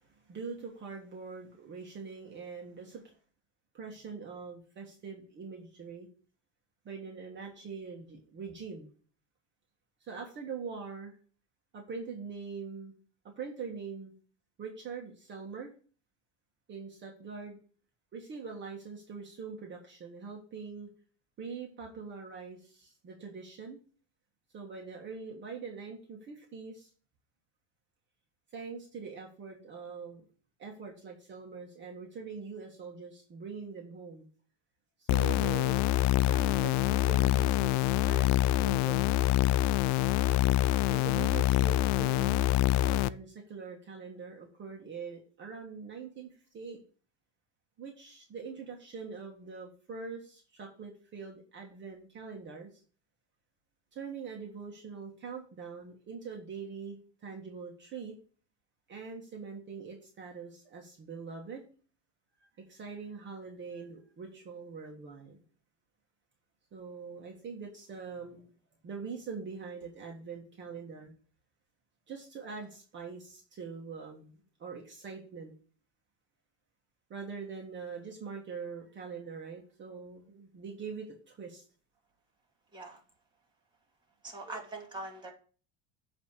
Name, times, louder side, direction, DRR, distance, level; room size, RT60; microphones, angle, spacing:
voice 1, 0.0-3.2 3.7-6.1 6.8-8.9 10.1-11.1 11.7-12.9 13.4-14.1 14.6-15.7 16.7-17.6 18.1-20.9 21.4-23.8 24.5-26.9 28.5-30.2 30.6-34.3 35.0-35.8 36.2-39.2 40.9-42.5 42.8-46.8 47.8-52.7 53.9-58.1 58.9-61.6 62.7-65.4 66.7-68.4 68.8-71.1 72.1-74.3 74.6-75.5 77.1-81.6, right 5 dB, 35° right, 0 dB, 1.7 m, -43 dB
sound 1, 35.1-43.1, left 14 dB, 55° left, 0.4 m, -26 dB
voice 2, 84.2-85.3, right 2 dB, 15° right, 0 dB, 2.2 m, -42 dB
8.4 x 3.4 x 6.7 m, 0.40 s
supercardioid pair, 130°, 34 cm